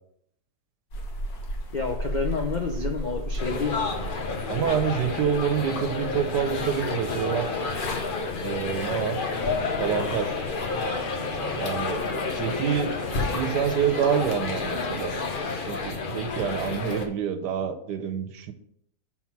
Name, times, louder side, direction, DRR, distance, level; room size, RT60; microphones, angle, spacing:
sound 1, 0.9-15.4, equal, 65° left, 1.6 m, -38 dB
voice 1, 1.7-3.8, left 5 dB, 85° left, 3 dB, 0.4 m, -29 dB
sound 2, 3.4-17.1, left 4 dB, 45° left, 0.7 m, -30 dB
voice 2, 4.5-7.5 8.4-9.2 9.8-10.4 11.5-12.0 12.4-13.0 13.3-15.1 15.7-18.5, right 8 dB, 80° right, 9 dB, 1.3 m, -27 dB
5.9 x 4.1 x 5.9 m, 0.71 s
omnidirectional pair, 1.8 m